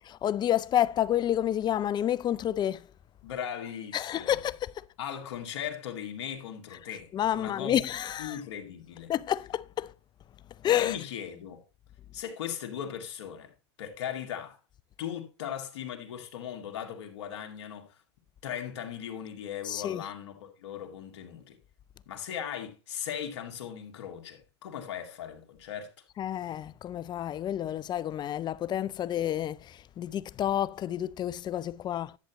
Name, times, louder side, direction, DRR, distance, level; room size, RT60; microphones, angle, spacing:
voice 1, 0.1-2.8 3.9-4.7 7.1-8.4 9.1-9.9 10.6-11.0 19.7-20.0 26.2-29.6 30.0-32.1, left 11 dB, 30° left, 0.4 m, -29 dB
voice 2, 3.2-4.4 5.0-7.9 8.2-9.1 10.8-11.6 12.1-13.5 13.8-14.6 15.0-18.0 18.4-21.6 22.1-25.9, left 9 dB, 80° left, 2.0 m, -38 dB
10.5 x 8.1 x 3.0 m
hypercardioid pair, 105°, 15 cm